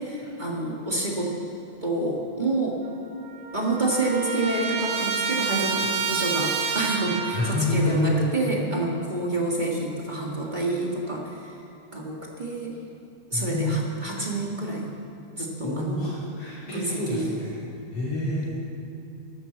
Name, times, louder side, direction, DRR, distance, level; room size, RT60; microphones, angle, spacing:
voice 1, 0.0-1.3 1.8-2.8 3.5-11.6 11.9-12.7 13.3-14.9 15.4-16.1 16.7-17.4, right 2 dB, 20° right, -3 dB, 1.3 m, -28 dB
Trumpet, 2.9-3.0 3.2-7.6, right 5 dB, 75° right, 2.3 m, -29 dB
voice 2, 7.3-8.3 13.3-14.3 15.6-17.6 17.9-18.5, left 1 dB, 55° left, -8 dB, 3.8 m, -27 dB
12.5 x 12.5 x 7.9 m, 2.8 s
omnidirectional pair, 3.4 m